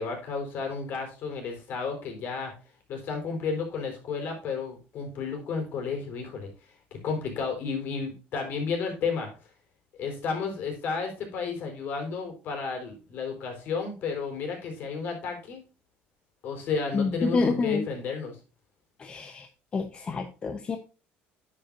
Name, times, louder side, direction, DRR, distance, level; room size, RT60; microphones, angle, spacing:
voice 1, 0.0-2.5 2.9-6.5 6.9-9.3 10.0-15.6 16.4-18.4, left 5 dB, 50° left, 3 dB, 4.5 m, -32 dB
voice 2, 16.9-17.9 19.0-19.5 19.7-20.8, left 4 dB, 25° left, 7 dB, 0.9 m, -28 dB
9.8 x 8.8 x 2.6 m, 0.33 s
cardioid pair, 145°, 4 cm